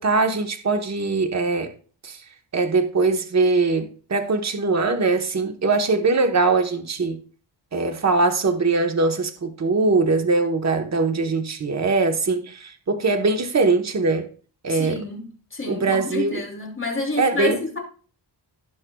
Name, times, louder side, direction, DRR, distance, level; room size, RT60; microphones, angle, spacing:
voice 1, 0.0-1.7 2.0-2.2 2.5-7.2 7.7-14.3 14.6-15.0 15.7-16.4 17.2-17.6, right 3 dB, 35° right, 1.1 m, -21 dB
voice 2, 14.7-17.8, left 2 dB, 25° left, 3.1 m, -29 dB
17.5 x 6.3 x 2.3 m
wide cardioid pair, 130°, 44 cm